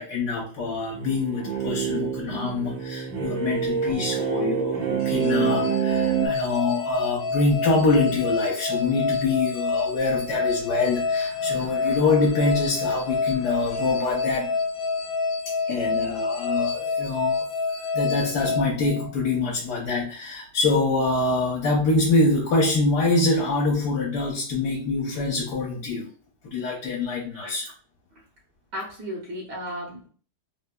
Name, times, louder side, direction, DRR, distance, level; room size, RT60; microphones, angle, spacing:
voice 1, 0.0-14.5 15.7-17.4 17.9-26.1 26.4-27.7, left 3 dB, 65° left, -3 dB, 1.3 m, -25 dB
sound 1, 0.9-6.3, right 8 dB, 85° right, 1.5 m, -27 dB
sound 2, 5.0-19.4, left 4 dB, 90° left, 0.6 m, -28 dB
voice 2, 27.3-27.7 28.1-28.2 28.7-30.1, equal, 70° right, -3 dB, 1.5 m, -35 dB
3.5 x 2.7 x 2.2 m, 0.39 s
omnidirectional pair, 2.0 m